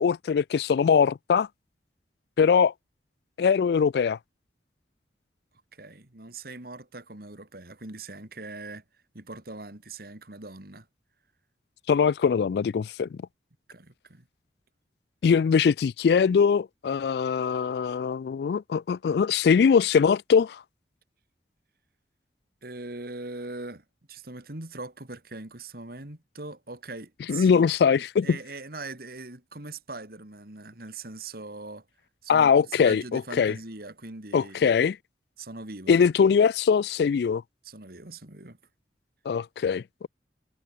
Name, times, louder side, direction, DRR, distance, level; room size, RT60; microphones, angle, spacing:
voice 1, 0.0-1.5 2.4-2.7 3.4-4.2 11.9-13.2 15.2-20.6 27.3-28.4 32.3-33.5 34.3-35.0 35.9-37.4 39.3-40.1, left 6 dB, 65° left, 0.3 m, -22 dB
voice 2, 5.7-8.8 9.1-10.9 13.7-14.3 22.6-31.9 32.2-34.7 35.4-36.1 37.6-38.6, right 2 dB, 55° right, 2.5 m, -41 dB
head